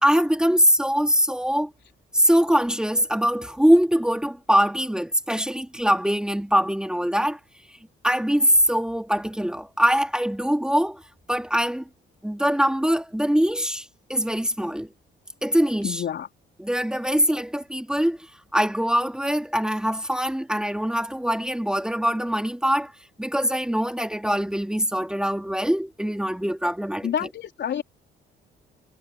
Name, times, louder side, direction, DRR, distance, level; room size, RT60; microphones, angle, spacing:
voice 1, 0.0-1.7 2.1-7.4 8.0-11.0 11.3-11.9 12.2-14.9 15.4-16.0 16.6-18.2 18.5-22.9 23.2-27.1, equal, 5° right, 2.6 m, -22 dB
voice 2, 15.8-16.3 27.0-27.8, left 9 dB, 65° left, 4.1 m, -28 dB
cardioid pair, 90°, 20 cm